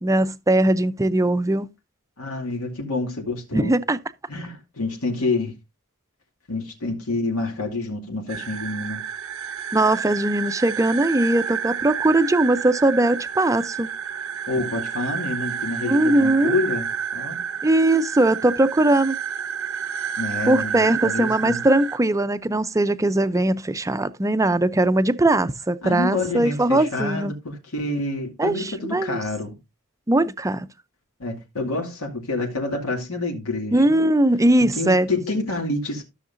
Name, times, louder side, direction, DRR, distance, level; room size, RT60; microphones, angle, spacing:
voice 1, 0.0-1.7 3.5-4.0 9.7-13.9 15.8-16.5 17.6-19.2 20.5-27.3 28.4-29.2 30.1-30.7 33.7-35.1, right 1 dB, 15° right, 0.5 m, -20 dB
voice 2, 2.2-3.7 4.3-5.5 6.5-9.0 14.5-16.9 17.1-17.4 20.2-21.6 25.8-29.6 31.2-34.0 34.7-36.0, left 2 dB, 85° left, 2.4 m, -28 dB
sound 1, 8.3-22.0, right 7 dB, 65° right, 0.7 m, -30 dB
13.5 x 6.5 x 2.6 m
head